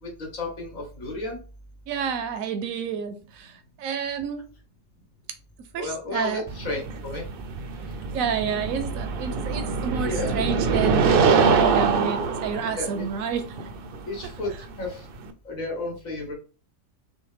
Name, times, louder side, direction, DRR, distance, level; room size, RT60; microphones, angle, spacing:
voice 1, 0.0-1.4 5.8-7.2 10.0-10.4 11.5-11.8 12.7-13.0 14.1-15.1 15.5-16.3, left 2 dB, 75° left, -1 dB, 2.1 m, -33 dB
voice 2, 1.9-4.5 5.7-6.4 8.1-13.7, right 7 dB, 85° right, 8 dB, 1.1 m, -30 dB
sound 1, 6.5-15.3, right 5 dB, 60° right, 0.6 m, -24 dB
6.1 x 2.2 x 3.4 m, 0.35 s
omnidirectional pair, 1.4 m